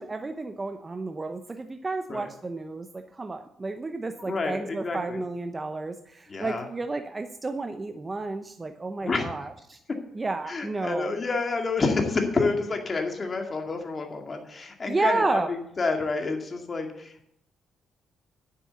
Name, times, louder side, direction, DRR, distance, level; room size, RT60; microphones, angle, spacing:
voice 1, 0.0-9.8 10.1-11.1 14.9-15.5, right 3 dB, 25° right, 7 dB, 0.7 m, -31 dB
voice 2, 4.2-5.2 6.3-6.6 9.0-9.3 10.5-17.3, left 3 dB, 35° left, 4 dB, 2.2 m, -29 dB
9.5 x 7.6 x 6.9 m, 0.74 s
cardioid pair, 90°, 0 cm